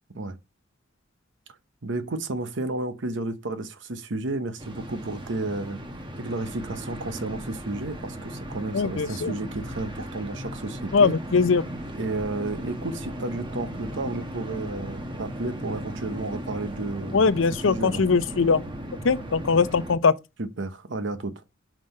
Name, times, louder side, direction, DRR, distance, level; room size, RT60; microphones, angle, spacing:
voice 1, 1.8-5.8 6.2-11.1 11.9-17.3 17.7-18.0 20.4-21.3, right 2 dB, 65° right, 0.9 m, -32 dB
sound 1, 4.6-20.0, equal, 25° right, 1.1 m, -37 dB
voice 2, 8.7-9.3 10.9-11.6 17.1-18.7 19.0-20.1, left 5 dB, 75° left, 0.6 m, -21 dB
5.7 x 5.0 x 5.4 m
head